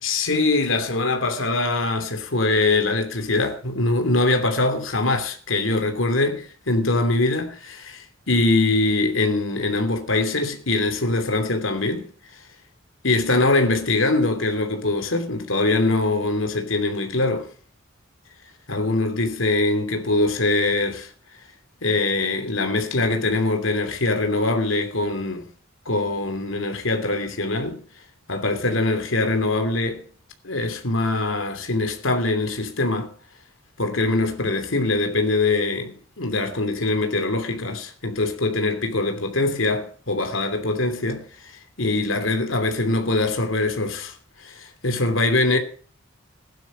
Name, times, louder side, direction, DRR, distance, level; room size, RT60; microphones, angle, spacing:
voice 1, 0.0-12.4 13.0-17.5 18.7-21.1 21.8-25.5 25.8-27.8 28.3-30.0 30.4-33.1 33.8-45.6, left 2 dB, 80° left, 2.8 m, -23 dB
16.0 x 11.5 x 5.1 m
head